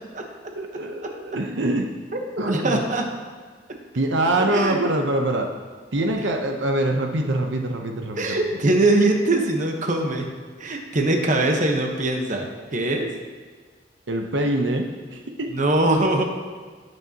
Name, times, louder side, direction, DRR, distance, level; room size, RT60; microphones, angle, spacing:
voice 1, 0.5-1.9 2.4-2.8 3.9-5.5 5.9-8.4 14.1-15.6, right 1 dB, 85° right, 3 dB, 0.9 m, -24 dB
voice 2, 2.5-3.0 4.4-4.8 8.2-10.3 10.6-13.1 15.5-16.2, right 2 dB, 45° right, 2 dB, 1.1 m, -22 dB
18.0 x 6.4 x 2.9 m, 1.5 s
head